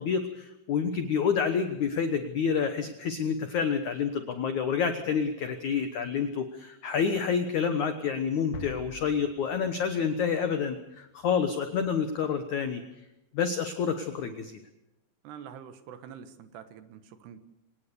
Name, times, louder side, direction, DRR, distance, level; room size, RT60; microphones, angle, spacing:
voice 1, 0.0-12.8 13.3-14.6, left 6 dB, 85° left, 8 dB, 1.6 m, -28 dB
sound 1, 8.5-10.4, left 5 dB, 65° left, 3.0 m, -44 dB
voice 2, 15.2-17.4, right 8 dB, 70° right, 10 dB, 3.2 m, -46 dB
25.0 x 19.0 x 6.9 m, 0.92 s
omnidirectional pair, 5.4 m